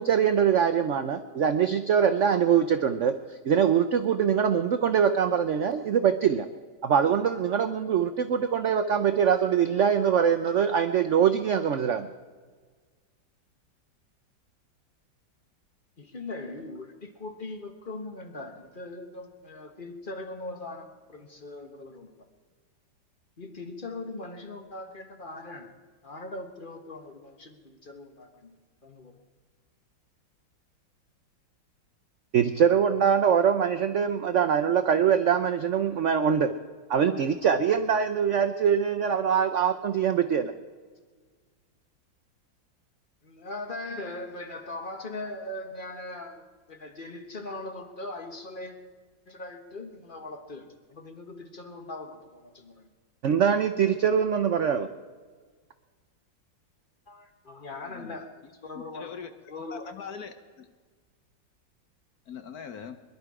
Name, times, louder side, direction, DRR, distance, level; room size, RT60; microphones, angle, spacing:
voice 1, 0.0-3.1 3.4-6.5 6.8-12.1 32.3-36.5 36.9-40.5 53.2-54.9, right 7 dB, 75° right, 9 dB, 0.6 m, -23 dB
voice 2, 16.0-22.3 23.4-25.7 26.0-28.6 28.8-29.2 43.2-48.8 49.3-52.9 57.1-58.3 58.6-59.2 59.5-59.9, left 2 dB, 30° left, 5 dB, 1.3 m, -40 dB
voice 3, 57.7-58.2 58.7-59.3 59.7-60.7 62.3-63.0, left 6 dB, 60° left, 8 dB, 1.2 m, -41 dB
22.5 x 11.5 x 4.9 m, 1.5 s
omnidirectional pair, 2.0 m